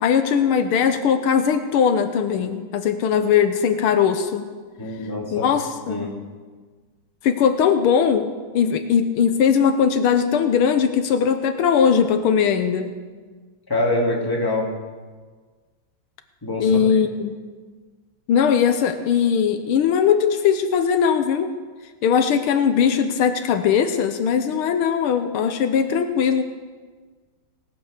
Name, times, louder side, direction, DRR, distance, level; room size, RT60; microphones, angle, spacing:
voice 1, 0.0-4.5 5.3-6.1 7.2-8.3 8.5-12.9 16.6-17.4 18.3-21.5 22.0-26.4, left 7 dB, 85° left, 8 dB, 1.7 m, -19 dB
voice 2, 4.8-5.5 5.9-6.1 13.7-14.7 16.4-16.7, left 1 dB, 10° left, -3 dB, 2.6 m, -24 dB
18.5 x 8.9 x 6.6 m, 1.4 s
omnidirectional pair, 2.3 m